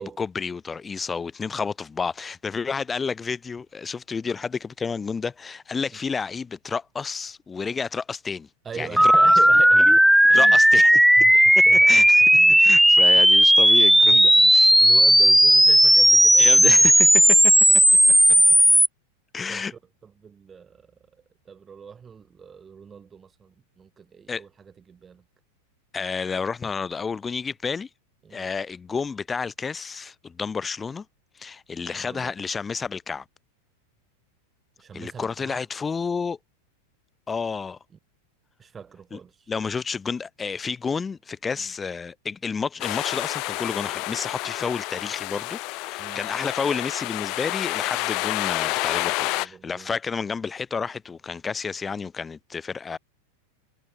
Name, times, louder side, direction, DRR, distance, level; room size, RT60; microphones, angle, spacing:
voice 1, 0.0-8.5 8.8-9.1 9.9-10.0 10.3-10.9 11.6-12.2 12.6-14.7 16.4-17.5 19.3-19.7 24.3-24.4 25.9-27.9 28.3-31.1 31.4-33.3 34.9-36.4 37.3-37.8 39.1-39.2 39.5-53.0, left 5 dB, 15° left, 1.9 m, -30 dB
voice 2, 8.6-10.0 10.3-10.6 11.2-12.1 12.3-12.6 14.1-14.5 14.8-17.0 18.4-18.5 19.5-21.0 21.5-25.2 28.2-28.5 31.9-32.3 34.8-35.6 38.6-39.5 41.6-41.7 46.0-46.2 49.2-49.9, right 6 dB, 20° right, 7.1 m, -41 dB
sound 1, 9.0-18.9, equal, ahead, 0.7 m, -15 dB
sound 2, 42.8-49.5, left 26 dB, 40° left, 3.2 m, -29 dB
figure-of-eight pair, 90°, 0 cm